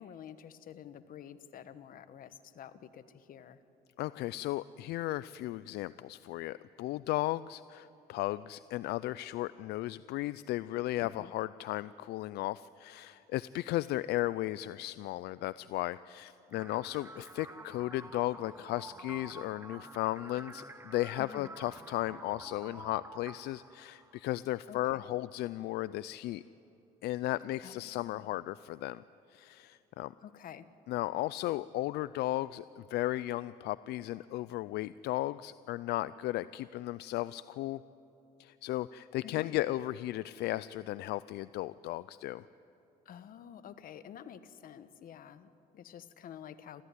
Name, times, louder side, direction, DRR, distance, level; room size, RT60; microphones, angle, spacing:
voice 1, 0.0-3.6 11.1-11.3 21.2-21.5 24.7-25.1 27.6-28.3 30.2-30.7 39.2-39.5 43.0-46.8, left 9 dB, 55° left, 12 dB, 1.2 m, -49 dB
voice 2, 4.0-26.4 27.0-29.0 29.3-30.1 30.9-37.8 38.4-42.5, left 16 dB, 75° left, 17 dB, 0.4 m, -35 dB
sound 1, 16.5-24.5, right 2 dB, 15° right, 1.0 m, -50 dB
28.5 x 14.0 x 9.7 m, 2.9 s
cardioid pair, 110°, 17 cm